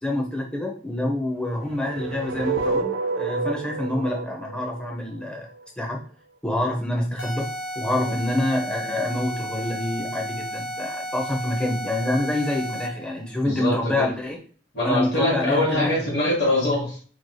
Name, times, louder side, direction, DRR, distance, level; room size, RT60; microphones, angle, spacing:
voice 1, 0.0-5.5 5.8-6.0 6.4-7.5 7.8-14.4 14.8-16.1, left 1 dB, 5° left, -1 dB, 0.5 m, -26 dB
sound 1, 1.6-5.7, right 4 dB, 90° right, 0.4 m, -29 dB
sound 2, 7.2-13.1, equal, 80° left, 0.6 m, -33 dB
voice 2, 13.4-14.1 14.7-17.0, left 1 dB, 55° left, -5 dB, 1.2 m, -24 dB
3.1 x 2.6 x 2.2 m, 0.43 s
head